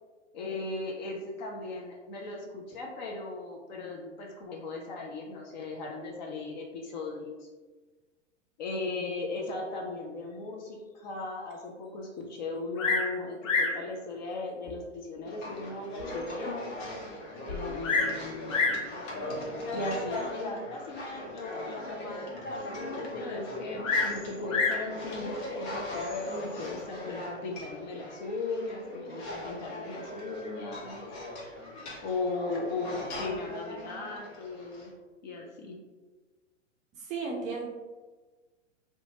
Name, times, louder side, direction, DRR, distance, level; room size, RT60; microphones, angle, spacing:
voice 1, 0.3-7.5 8.6-16.7 17.5-18.6 19.7-31.0 32.0-34.9 35.2-35.8, left 3 dB, 40° left, 0 dB, 0.4 m, -37 dB
Bird vocalization bird call bird song, 12.8-13.1 13.4-13.8 14.7-14.8 15.4-15.5 16.0-16.1 16.3-16.4 17.5-18.2 18.5-18.9 19.8-20.2 23.8-24.9 25.9-26.4, left 4 dB, 90° left, 0.6 m, -28 dB
sound 1, 15.2-34.9, left 1 dB, 60° left, 0.9 m, -39 dB
voice 2, 37.0-37.6, right 4 dB, 20° right, -3 dB, 0.4 m, -34 dB
2.7 x 2.2 x 2.7 m, 1.3 s
hypercardioid pair, 110°, 38 cm